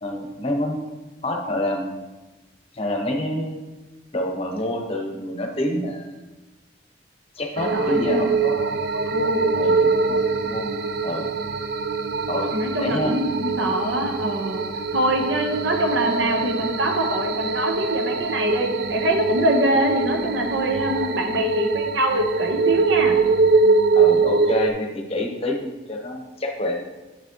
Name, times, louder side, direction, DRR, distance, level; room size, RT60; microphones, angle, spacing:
voice 1, 0.0-0.8 1.2-2.0 2.7-3.6 4.1-6.2 7.4-8.7 9.5-11.3 12.3-12.5 12.8-13.1 15.0-15.1 20.9-21.2 23.9-26.8, left 1 dB, 35° left, 2 dB, 0.9 m, -27 dB
sound 1, 7.6-24.7, right 4 dB, 60° right, 0.4 m, -23 dB
voice 2, 7.7-8.3 9.1-9.5 12.5-14.6 14.9-23.2, right 1 dB, 90° right, 3 dB, 1.1 m, -24 dB
8.6 x 6.0 x 3.0 m, 1.1 s
head